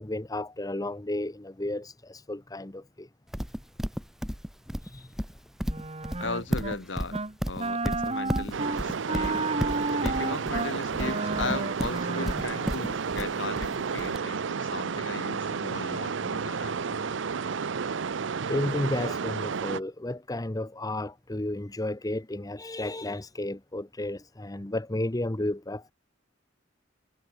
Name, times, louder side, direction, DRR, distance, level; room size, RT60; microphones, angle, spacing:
voice 1, 0.0-3.1 4.8-5.1 18.5-25.9, left 1 dB, 20° left, 1.0 m, -32 dB
Livestock farm animals working animals, 3.3-14.2, equal, ahead, 3.3 m, -33 dB
Wind instrument woodwind instrument, 5.7-6.8 7.1-7.3 7.6-12.9, right 3 dB, 35° right, 2.5 m, -32 dB
voice 2, 6.2-7.2 7.5-9.4 10.0-17.4, left 3 dB, 75° left, 1.9 m, -37 dB
sound 1, 8.5-19.8, right 5 dB, 80° right, 0.6 m, -32 dB
head